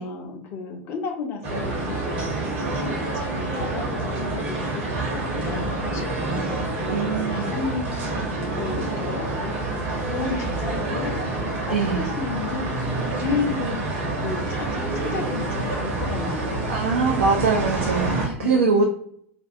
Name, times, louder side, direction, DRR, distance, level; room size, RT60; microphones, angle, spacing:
voice 1, 0.0-2.5 2.8-8.1 8.6-9.4 10.1-13.9 14.2-16.7 18.4-18.8, left 5 dB, 40° left, 2 dB, 0.5 m, -33 dB
sound 1, 1.4-18.3, right 2 dB, 50° right, 0.9 m, -27 dB
voice 2, 6.9-7.5 11.7-12.0 16.7-18.8, right 4 dB, 70° right, 1 dB, 0.4 m, -22 dB
2.4 x 2.3 x 2.5 m, 0.64 s
figure-of-eight pair, 80°, 7 cm